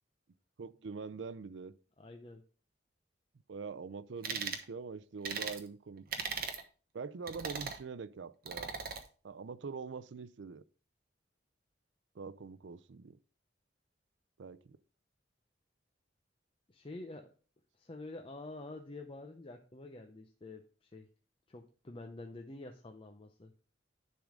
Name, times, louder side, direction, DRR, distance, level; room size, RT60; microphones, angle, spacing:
voice 1, 0.6-1.7 3.5-6.0 6.9-8.7 9.2-10.6 12.1-13.2 14.4-14.8, right 5 dB, 80° right, 0.5 m, -44 dB
voice 2, 2.0-2.4 16.7-17.3 17.7-21.1 21.5-23.5, left 2 dB, 30° left, 0.6 m, -48 dB
sound 1, 4.2-4.6 5.2-5.6 6.1-6.6 7.3-7.8 8.5-9.0, right 6 dB, 55° right, 1.1 m, -38 dB
10.5 x 3.8 x 4.9 m
head